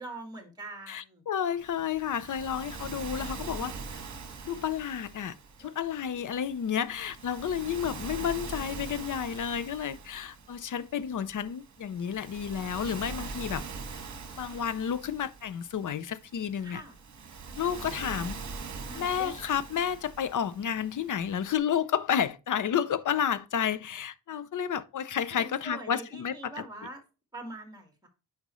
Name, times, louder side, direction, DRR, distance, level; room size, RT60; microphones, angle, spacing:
voice 1, 0.0-1.2 5.6-5.7 16.6-17.0 17.5-18.3 18.8-19.6 25.3-27.0 27.3-28.1, right 2 dB, 10° right, 1.8 m, -44 dB
voice 2, 0.9-3.7 4.4-13.6 14.4-16.8 17.6-18.4 18.9-26.5, left 8 dB, 45° left, 0.6 m, -31 dB
Waves surf, 1.6-21.6, right 4 dB, 40° right, 1.3 m, -43 dB
9.2 x 5.2 x 3.1 m
wide cardioid pair, 140°, 42 cm